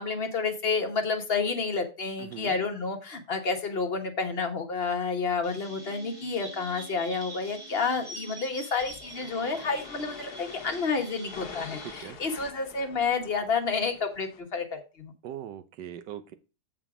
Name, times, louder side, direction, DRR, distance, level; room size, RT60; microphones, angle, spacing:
voice 1, 0.0-15.1, left 4 dB, 40° left, 4 dB, 1.3 m, -30 dB
voice 2, 2.2-2.5 11.8-12.2 15.2-16.4, right 11 dB, 85° right, 12 dB, 1.4 m, -40 dB
Chirp tweet, 5.4-12.0, right 1 dB, 30° right, 2.9 m, -45 dB
sound 1, 5.6-9.4 9.8-9.9, right 7 dB, 70° right, 3.0 m, -54 dB
sound 2, 8.8-14.4, left 6 dB, 70° left, 1.5 m, -46 dB
7.6 x 5.1 x 4.9 m, 0.31 s
omnidirectional pair, 1.8 m